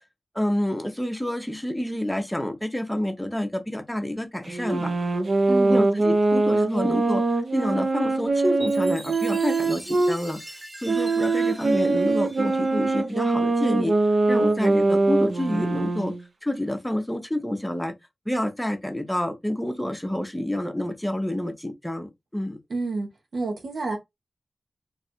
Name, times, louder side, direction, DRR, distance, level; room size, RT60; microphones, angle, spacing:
voice 1, 0.3-4.9 5.7-10.4 10.8-13.9 14.3-16.1 16.4-17.9 18.3-22.6, left 1 dB, 5° left, 0.8 m, -28 dB
sound 1, 4.5-10.2 10.8-16.2, right 3 dB, 55° right, 0.6 m, -23 dB
voice 2, 5.5-5.8 22.7-24.0, right 3 dB, 75° right, 1.2 m, -29 dB
Chime, 8.6-13.3, right 1 dB, 15° right, 1.1 m, -42 dB
3.2 x 2.4 x 4.3 m
wide cardioid pair, 120°, 0 cm